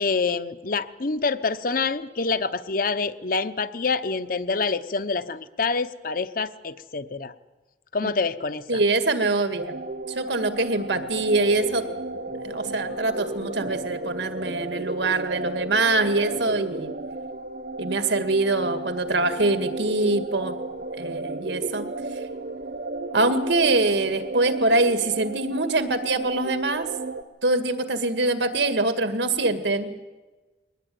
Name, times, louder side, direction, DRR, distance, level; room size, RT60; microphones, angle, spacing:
voice 1, 0.0-7.3 7.9-8.8, left 4 dB, 50° left, 12 dB, 0.9 m, -26 dB
voice 2, 8.7-9.8 10.2-11.8 12.5-16.9 17.8-20.6 21.0-21.8 23.1-26.9 27.4-30.0, right 2 dB, 80° right, 8 dB, 2.0 m, -24 dB
sound 1, 9.6-27.2, right 2 dB, 55° right, 1.1 m, -34 dB
sound 2, 10.2-17.0, left 1 dB, 70° left, 2.4 m, -47 dB
22.0 x 19.0 x 9.4 m, 1.2 s
head